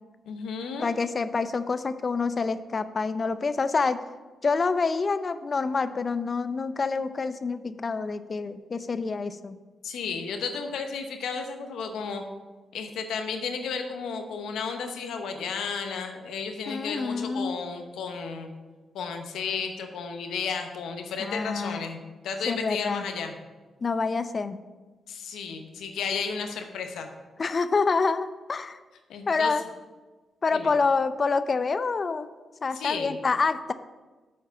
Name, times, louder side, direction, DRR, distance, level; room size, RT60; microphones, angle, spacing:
voice 1, 0.3-0.9 9.8-12.2 12.7-18.5 18.9-23.3 25.1-27.1 29.1-29.5 30.5-30.7 32.7-33.2, left 5 dB, 90° left, 5 dB, 0.8 m, -33 dB
voice 2, 0.8-4.0 4.4-9.6 16.7-17.5 21.2-21.8 22.5-23.0 23.8-24.6 27.4-28.8 29.3-29.6 30.4-32.3 32.6-33.7, left 4 dB, 45° left, 12 dB, 0.4 m, -27 dB
7.2 x 4.7 x 5.6 m, 1.3 s
cardioid pair, 70°, 0 cm